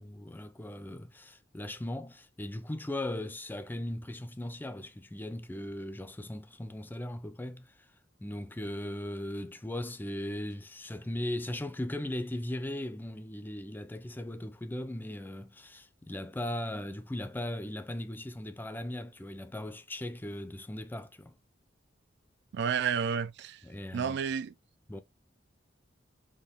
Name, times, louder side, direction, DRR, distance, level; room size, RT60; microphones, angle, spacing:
voice 1, 0.0-7.7 8.2-21.3 23.6-24.2 24.9-25.0, left 1 dB, 10° left, 0.4 m, -38 dB
voice 2, 22.5-23.6 23.9-24.5, right 7 dB, 65° right, 0.3 m, -31 dB
4.4 x 2.9 x 3.4 m
head